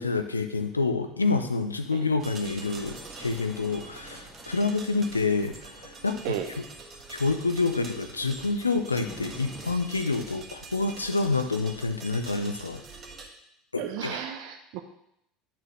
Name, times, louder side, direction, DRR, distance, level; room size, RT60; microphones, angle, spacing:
voice 1, 0.0-6.2 7.1-12.8 13.7-14.2, left 3 dB, 85° left, 8 dB, 0.5 m, -28 dB
sound 1, 2.2-13.3, right 3 dB, 35° right, 1.5 m, -45 dB
sound 2, 2.6-9.7, equal, 10° left, 1.5 m, -50 dB
sound 3, 6.8-10.1 11.9-13.2, right 1 dB, 5° right, 2.2 m, -56 dB
voice 2, 13.8-14.8, right 10 dB, 60° right, 6 dB, 0.5 m, -33 dB
10.5 x 4.3 x 3.1 m, 0.77 s
figure-of-eight pair, 70°, 0 cm